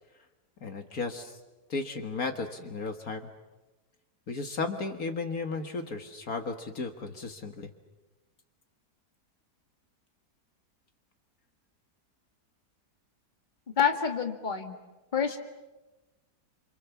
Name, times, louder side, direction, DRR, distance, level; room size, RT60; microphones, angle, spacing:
voice 1, 0.6-1.4 1.7-3.3 4.3-7.7, left 3 dB, 60° left, 6 dB, 2.1 m, -34 dB
voice 2, 13.8-14.7 15.1-15.4, left 7 dB, 30° left, 5 dB, 2.1 m, -27 dB
29.0 x 27.5 x 7.2 m, 1.1 s
omnidirectional pair, 1.7 m